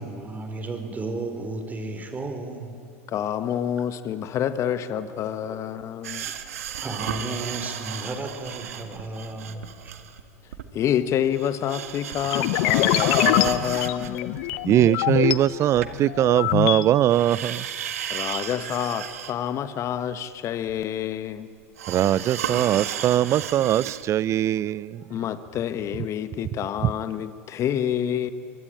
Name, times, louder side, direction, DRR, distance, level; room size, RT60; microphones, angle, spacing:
voice 1, 0.0-2.8 4.7-4.8 5.5-5.6 6.2-6.4 6.8-9.9, right 2 dB, 20° right, 6 dB, 4.7 m, -33 dB
voice 2, 3.1-6.3 10.7-14.4 18.1-21.5 22.5-22.6 25.1-28.3, left 10 dB, 40° left, 12 dB, 1.4 m, -27 dB
sound 1, 6.0-10.2 10.5-10.7 11.0-16.7 17.1-19.5 19.8-19.9 20.7-20.8 21.8-24.0 24.4-24.5, right 9 dB, 75° right, 1.8 m, -34 dB
sound 2, 12.3-15.4 15.8-16.8, left 16 dB, 60° left, 1.1 m, -24 dB
voice 3, 14.7-17.6 21.9-25.0, right 12 dB, 40° right, 22 dB, 0.6 m, -21 dB
24.0 x 23.5 x 9.2 m, 2.5 s
hypercardioid pair, 90°, 8 cm